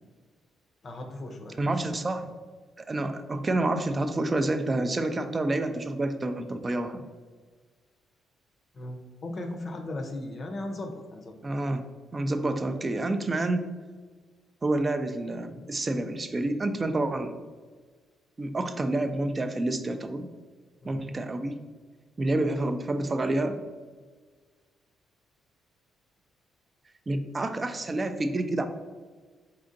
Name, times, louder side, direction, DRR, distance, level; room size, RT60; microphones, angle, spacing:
voice 1, 0.8-1.7 8.7-11.3 20.8-21.1, left 1 dB, 45° left, 4 dB, 0.6 m, -37 dB
voice 2, 1.6-2.2 2.8-7.0 11.4-11.8 12.1-13.6 14.6-17.3 18.4-20.3 20.9-21.6 22.2-23.6 27.1-28.7, right 2 dB, 25° right, 9 dB, 0.4 m, -28 dB
4.3 x 3.7 x 2.6 m, 1.4 s
cardioid pair, 90°, 0 cm